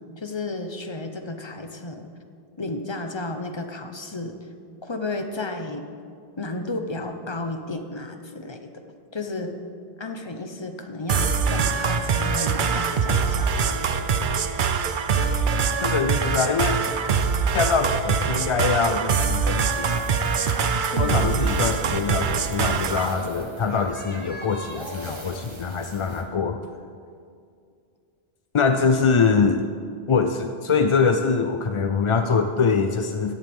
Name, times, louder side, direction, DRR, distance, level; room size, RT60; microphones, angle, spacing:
voice 1, 0.0-2.1 2.6-4.4 4.8-5.8 6.4-8.7 9.1-9.6 10.0-14.0 20.9-21.3, left 2 dB, 30° left, 6 dB, 0.8 m, -33 dB
sound 1, 11.1-23.1, right 5 dB, 55° right, 0.7 m, -23 dB
voice 2, 15.8-16.8 17.5-20.2 21.0-26.6 28.5-29.7 30.1-33.3, left 5 dB, 45° left, 7 dB, 0.4 m, -23 dB
sound 2, 19.7-26.2, right 1 dB, 30° right, 1.1 m, -41 dB
16.0 x 11.0 x 3.5 m, 2.3 s
omnidirectional pair, 1.1 m